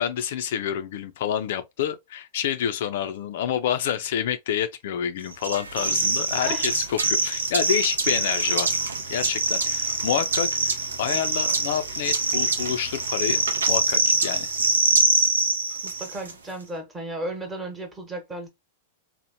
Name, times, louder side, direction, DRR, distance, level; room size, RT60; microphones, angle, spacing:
voice 1, 0.0-8.7 9.1-14.5, left 9 dB, 65° left, 0.3 m, -28 dB
sound 1, 5.4-16.3, right 3 dB, 85° right, 0.5 m, -24 dB
voice 2, 15.8-18.5, right 1 dB, 15° right, 1.0 m, -34 dB
2.9 x 2.0 x 2.6 m
hypercardioid pair, 105°, 0 cm